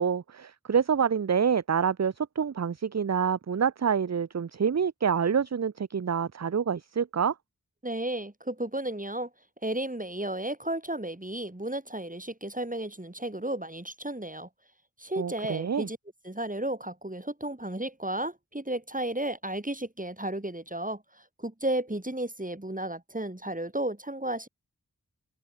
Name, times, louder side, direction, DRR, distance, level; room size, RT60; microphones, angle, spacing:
voice 1, 0.0-7.3 15.2-15.9, right 7 dB, 50° right, 0.6 m, -27 dB
voice 2, 7.8-9.3 9.6-14.5 15.0-16.0 16.2-21.0 21.4-24.5, right 1 dB, 20° right, 4.8 m, -33 dB
open air
wide cardioid pair, 50°, 36 cm